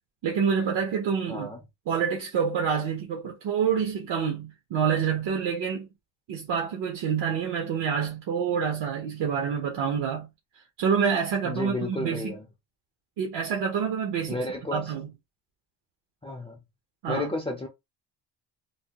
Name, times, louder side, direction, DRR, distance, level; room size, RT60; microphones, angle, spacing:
voice 1, 0.2-1.5 1.9-5.9 6.3-10.3 10.8-12.3 13.2-14.4 14.7-15.1 17.0-17.3, right 7 dB, 75° right, 0.8 m, -27 dB
voice 2, 1.3-1.6 11.4-12.5 14.3-14.9 16.2-16.6 17.1-17.7, left 2 dB, 15° left, 0.3 m, -32 dB
3.3 x 2.1 x 2.8 m
cardioid pair, 165°, 43 cm